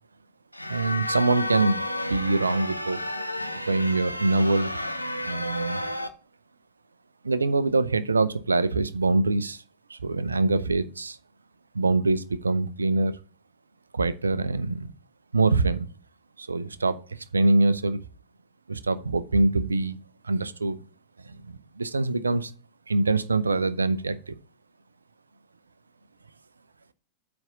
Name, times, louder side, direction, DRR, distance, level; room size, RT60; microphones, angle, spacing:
sound 1, 0.5-6.1, left 1 dB, 90° left, 0.6 m, -31 dB
voice 1, 0.7-1.8 2.1-3.0 3.7-4.8 5.2-5.8 7.2-9.6 9.9-11.2 11.7-13.2 13.9-14.9 15.3-15.9 16.4-18.0 18.7-20.0 20.2-20.8 21.2-22.5 22.9-24.3, right 3 dB, 75° right, 0.5 m, -24 dB
8.8 x 3.5 x 6.5 m
figure-of-eight pair, 90°, 0 cm